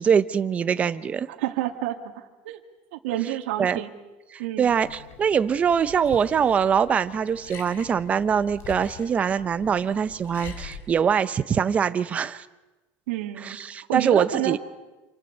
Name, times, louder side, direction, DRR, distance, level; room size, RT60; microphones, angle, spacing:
voice 1, 0.0-1.3 3.6-3.8 4.3-12.4 13.4-14.6, right 7 dB, 20° right, 12 dB, 0.7 m, -23 dB
voice 2, 1.3-2.6 2.9-3.9 4.4-4.7 13.1-13.6 13.9-14.6, right 14 dB, 75° right, 3 dB, 2.0 m, -28 dB
Liquid, 4.7-10.8, left 5 dB, 45° left, 5.3 m, -44 dB
27.0 x 25.5 x 6.6 m, 1.2 s
supercardioid pair, 155°, 7 cm